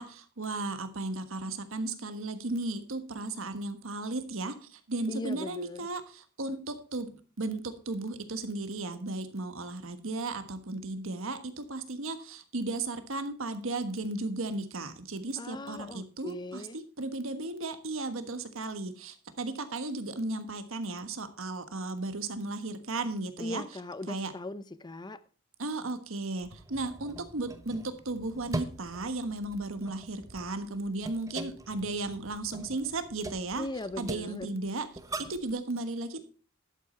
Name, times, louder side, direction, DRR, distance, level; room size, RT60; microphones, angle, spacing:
voice 1, 0.0-23.6 24.1-24.3 25.6-33.7 34.0-34.9 35.3-36.2, right 2 dB, 70° right, 9 dB, 1.3 m, -35 dB
voice 2, 5.1-5.9 15.4-16.8 23.4-25.2 33.6-34.5, left 2 dB, 20° left, 15 dB, 0.5 m, -39 dB
sound 1, 26.4-35.5, right 2 dB, 15° right, 0.8 m, -43 dB
11.5 x 8.4 x 4.3 m, 0.39 s
head